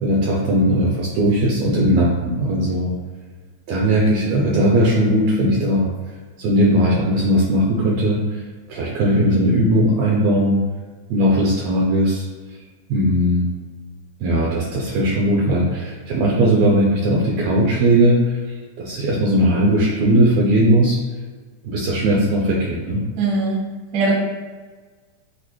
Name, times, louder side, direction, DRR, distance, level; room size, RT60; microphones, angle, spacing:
voice 1, 0.0-2.9 3.7-5.9 6.4-8.4 8.7-10.6 11.1-12.3 12.9-13.5 14.2-18.4 18.8-21.0 21.6-23.0, right 1 dB, 80° right, -3 dB, 1.6 m, -18 dB
voice 2, 23.2-23.6 23.9-24.1, right 3 dB, 65° right, -4 dB, 1.1 m, -20 dB
6.1 x 2.7 x 3.0 m, 1.4 s
omnidirectional pair, 3.6 m